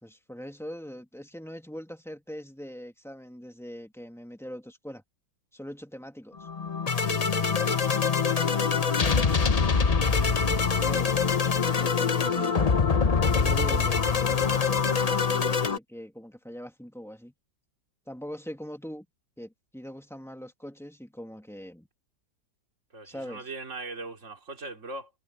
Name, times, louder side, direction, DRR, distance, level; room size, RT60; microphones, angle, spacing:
voice 1, 0.0-5.0 5.5-6.5 10.8-11.1 11.8-17.3 18.1-19.1 19.4-21.9 23.0-23.5, equal, ahead, 1.9 m, -42 dB
Fiery Angel, 6.4-15.8, left 5 dB, 50° left, 0.4 m, -24 dB
voice 2, 22.9-25.1, right 3 dB, 40° right, 3.3 m, -40 dB
omnidirectional pair, 2.0 m